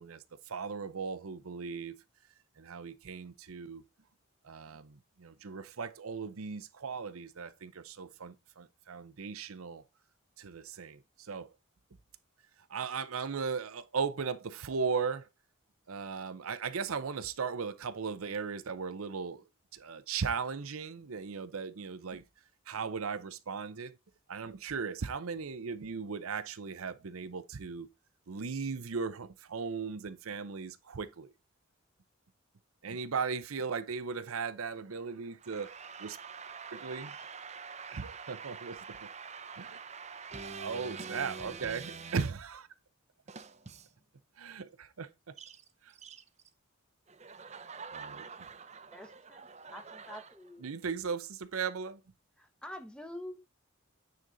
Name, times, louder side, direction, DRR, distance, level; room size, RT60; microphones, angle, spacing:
voice 1, 0.0-2.0 2.6-3.8 4.4-9.8 10.4-11.5 12.7-15.3 15.9-19.4 19.7-22.2 22.7-24.0 24.3-27.9 28.3-31.3 32.8-35.7 36.0-36.2 36.7-37.1 37.9-38.8 39.6-39.7 40.6-42.7 44.4-45.4 48.0-48.1 50.6-52.0, right 5 dB, 80° right, 0.6 m, -37 dB
voice 2, 35.4-42.3 43.3-44.0 45.4-45.6 45.9-46.2 47.1-50.4, right 5 dB, 30° right, 0.7 m, -46 dB
voice 3, 48.9-50.6 52.4-53.6, left 1 dB, 5° left, 0.9 m, -47 dB
9.3 x 4.1 x 3.9 m
head